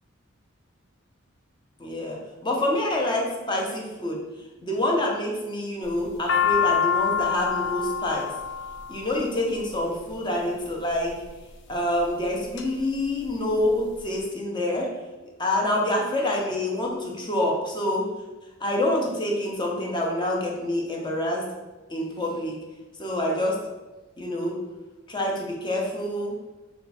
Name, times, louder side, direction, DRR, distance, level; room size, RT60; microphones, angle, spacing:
voice 1, 1.8-4.2 4.6-8.3 8.9-11.2 11.7-14.9 15.4-18.1 18.6-21.5 21.9-22.6 23.0-23.6 24.2-24.6 25.1-26.3, left 1 dB, 25° left, -1 dB, 0.7 m, -27 dB
sound 1, 5.8-10.1 10.9-11.4 12.0-12.6 13.0-13.1 13.2-14.1, left 7 dB, 60° left, 0.4 m, -26 dB
4.4 x 2.3 x 4.1 m, 1.1 s
head